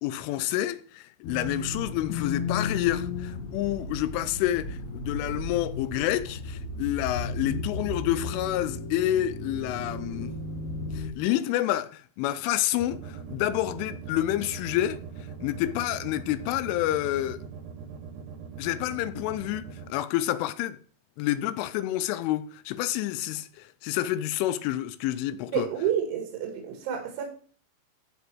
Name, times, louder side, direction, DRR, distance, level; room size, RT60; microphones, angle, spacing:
voice 1, 0.0-10.3 10.9-15.0 15.4-17.4 18.6-20.8 21.2-25.7, left 13 dB, 85° left, 2.9 m, -28 dB
sound 1, 1.2-11.1, left 3 dB, 55° left, 3.8 m, -34 dB
sound 2, 12.8-19.9, right 6 dB, 60° right, 2.4 m, -41 dB
voice 2, 25.5-27.3, right 8 dB, 90° right, 4.5 m, -29 dB
15.5 x 5.1 x 4.6 m
omnidirectional pair, 6.0 m